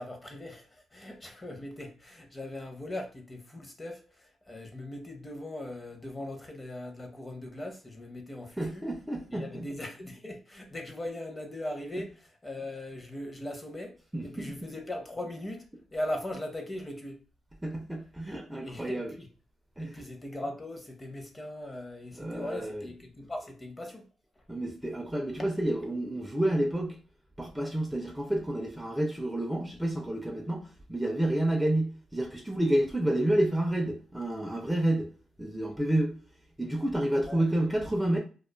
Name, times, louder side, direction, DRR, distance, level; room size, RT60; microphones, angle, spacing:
voice 1, 0.0-8.9 9.3-14.0 14.2-17.2 18.6-19.3 19.8-24.1 24.4-24.5 25.4-25.5 37.3-37.5, left 1 dB, 25° left, 0.7 m, -39 dB
voice 2, 8.6-9.7 14.1-14.5 17.6-19.1 19.8-19.9 22.2-22.8 24.5-27.0 27.4-35.1 35.4-36.2 36.6-38.2, right 1 dB, 10° right, 0.5 m, -29 dB
2.4 x 2.3 x 2.2 m
cardioid pair, 75°, 0 cm